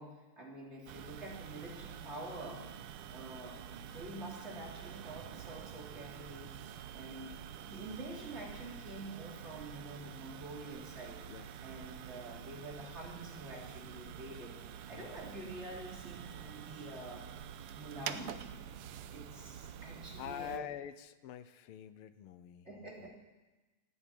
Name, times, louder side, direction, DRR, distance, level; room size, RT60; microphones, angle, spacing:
voice 1, 0.0-2.7 3.1-6.5 6.9-11.2 11.6-14.6 14.9-17.3 17.7-18.3 19.1-20.7 22.6-23.2, right 1 dB, 30° right, -3 dB, 3.4 m, -47 dB
sound 1, 0.9-20.6, right 9 dB, 85° right, 1.6 m, -47 dB
voice 2, 20.2-23.2, left 12 dB, 85° left, 13 dB, 1.6 m, -46 dB
15.5 x 9.8 x 8.5 m, 1.2 s
omnidirectional pair, 2.4 m